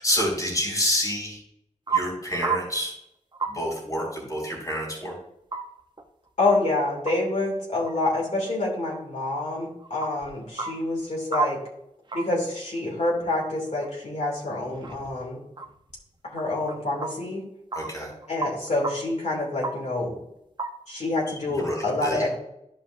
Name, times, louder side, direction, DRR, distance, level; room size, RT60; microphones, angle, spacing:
voice 1, 0.0-1.4 1.9-2.9 3.5-5.2 17.7-18.1 21.6-22.2, equal, 25° left, -2 dB, 3.0 m, -28 dB
sound 1, 1.9-2.0 2.4-2.8 3.3-3.5 5.5-5.6 6.0-6.1 6.5-7.2 7.9-8.0 8.9-9.0 9.8-10.3 10.6-10.7 11.3-11.5 12.1-12.2 13.8-13.9 14.2-14.3 14.7-15.2 15.6-15.9 16.4-16.7 17.0-17.1 17.7-17.9 18.2-18.9 19.4-19.7 20.6-20.7, right 5 dB, 35° right, 0.9 m, -29 dB
voice 2, 6.4-11.6 12.1-15.4 16.3-17.4 18.3-20.2 20.9-22.3, left 2 dB, 60° left, -4 dB, 2.7 m, -27 dB
12.0 x 5.2 x 2.7 m, 0.79 s
wide cardioid pair, 125°, 13 cm